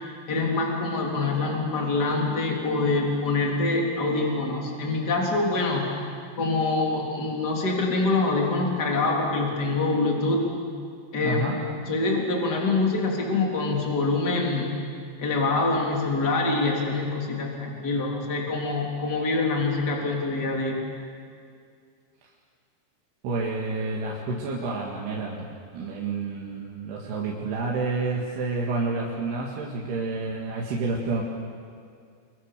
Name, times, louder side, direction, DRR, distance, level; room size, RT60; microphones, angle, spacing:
voice 1, 0.3-5.9 6.4-10.5 11.1-14.8 15.2-20.8, left 3 dB, 25° left, -1 dB, 3.5 m, -25 dB
voice 2, 11.2-11.6 23.2-31.2, right 3 dB, 70° right, -3 dB, 4.0 m, -29 dB
29.0 x 24.0 x 6.8 m, 2.3 s
omnidirectional pair, 5.1 m